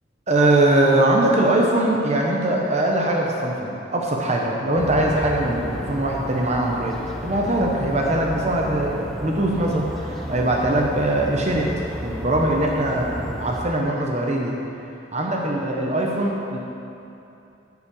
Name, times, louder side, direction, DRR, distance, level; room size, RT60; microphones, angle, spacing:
voice 1, 0.3-11.7 12.0-14.6 15.1-16.6, right 1 dB, 35° right, -1 dB, 0.9 m, -21 dB
sound 1, 4.8-13.6, equal, ahead, 0.7 m, -33 dB
10.5 x 5.5 x 7.0 m, 2.9 s
head